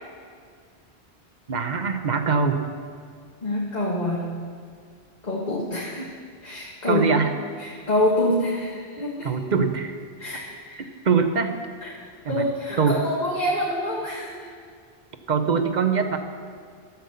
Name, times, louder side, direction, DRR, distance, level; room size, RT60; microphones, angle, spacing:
voice 1, 1.5-2.6 6.8-7.3 9.2-9.9 11.0-11.6 12.2-12.5 12.8-13.0 15.3-16.2, right 5 dB, 50° right, 7 dB, 0.8 m, -22 dB
voice 2, 3.4-4.4 5.2-6.1 6.4-7.0 7.6-9.3 10.2-10.4 10.7-10.8 11.8-11.9 12.3-14.5, left 1 dB, 45° left, -5 dB, 1.3 m, -26 dB
12.0 x 6.9 x 6.7 m, 2.1 s
omnidirectional pair, 1.0 m